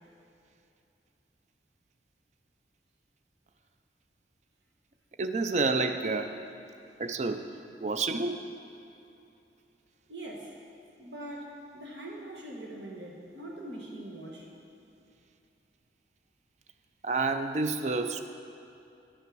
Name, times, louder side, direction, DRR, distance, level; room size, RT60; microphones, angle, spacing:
voice 1, 5.2-6.3 7.0-7.5 7.8-8.4 17.0-18.2, right 3 dB, 40° right, 8 dB, 0.4 m, -29 dB
voice 2, 10.1-10.5 11.0-14.5, right 1 dB, 85° right, -1 dB, 1.2 m, -42 dB
11.0 x 5.8 x 6.2 m, 2.7 s
head